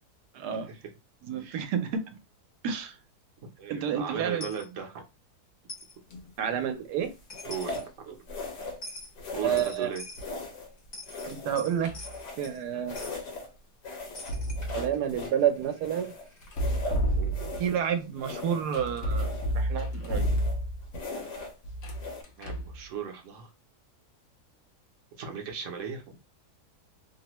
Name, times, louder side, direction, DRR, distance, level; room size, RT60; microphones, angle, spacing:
voice 1, 0.3-0.7 1.2-2.0 2.6-2.9 3.7-4.4 6.4-7.1 9.4-9.9 11.3-11.9 12.4-13.0 14.7-16.1 17.6-20.3, right 8 dB, 80° right, 1.1 m, -29 dB
voice 2, 1.4-1.7 3.6-5.0 7.4-8.3 9.3-10.0 17.1-17.3 22.4-23.5 25.2-26.2, right 6 dB, 60° right, 0.9 m, -37 dB
Coin (dropping), 4.4-4.7 5.7-5.9 7.0-7.1 7.3-7.8 8.8-9.1 9.6-10.3 10.8-12.6 13.0-13.2 14.1-16.8, left 2 dB, 35° left, 0.8 m, -45 dB
sound 1, 6.1-6.4 7.3-7.9 8.3-8.9 9.2-9.8 10.2-10.7 11.1-12.6 12.9-13.5 13.8-15.4 15.8-17.8 18.2-18.8 19.1-19.6 20.0-20.6 20.9-21.6 21.9-22.2, left 2 dB, 85° left, 1.5 m, -39 dB
sound 2, 11.8-12.2 14.1-15.0 16.4-17.7 18.7-20.9 21.6-22.8, equal, 65° left, 1.0 m, -30 dB
3.3 x 2.1 x 2.9 m
omnidirectional pair, 1.7 m